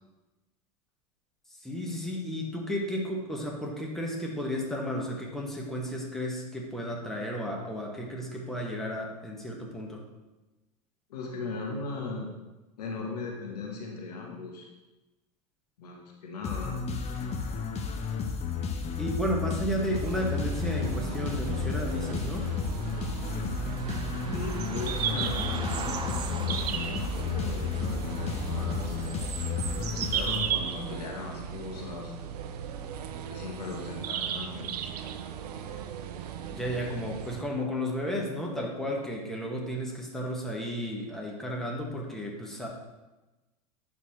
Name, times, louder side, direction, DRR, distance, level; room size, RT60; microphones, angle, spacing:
voice 1, 1.5-10.0 19.0-22.5 36.5-42.7, equal, ahead, -2 dB, 1.7 m, -33 dB
voice 2, 11.1-12.3 12.8-14.7 15.8-16.8 24.3-29.0 29.6-32.5 33.3-34.7, left 4 dB, 80° left, 1 dB, 1.4 m, -38 dB
sound 1, 16.4-31.0, left 6 dB, 30° left, 0.9 m, -33 dB
sound 2, 19.9-37.4, right 8 dB, 80° right, 0.5 m, -36 dB
sound 3, 23.5-28.7, right 4 dB, 25° right, 0.7 m, -42 dB
11.0 x 4.2 x 3.3 m, 1.1 s
hypercardioid pair, 85°, 20 cm